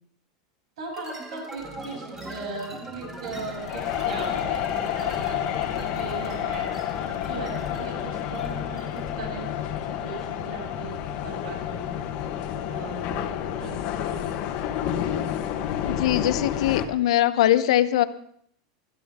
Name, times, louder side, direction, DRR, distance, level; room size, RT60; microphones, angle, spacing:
voice 1, 0.8-9.5 9.9-12.1 12.7-13.3 13.6-13.7 14.0-14.4, right 3 dB, 85° right, 0 dB, 7.7 m, -38 dB
sound 1, 0.9-9.2, right 1 dB, 15° right, 2.2 m, -41 dB
sound 2, 3.6-16.9, left 10 dB, 40° left, 1.3 m, -29 dB
voice 2, 15.9-18.0, left 13 dB, 75° left, 13 dB, 0.9 m, -21 dB
20.0 x 13.0 x 3.7 m, 0.65 s
supercardioid pair, 165°, 3 cm